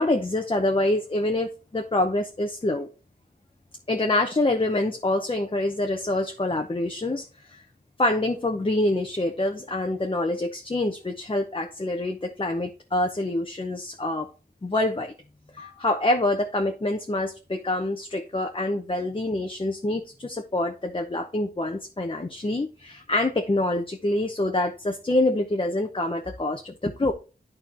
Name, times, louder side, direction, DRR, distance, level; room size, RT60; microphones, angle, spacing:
voice 1, 0.0-2.9 3.9-7.6 8.0-14.3 14.6-15.1 15.5-27.1, left 1 dB, 30° left, 0.9 m, -26 dB
11.0 x 4.5 x 3.0 m
wide cardioid pair, 65°, 17 cm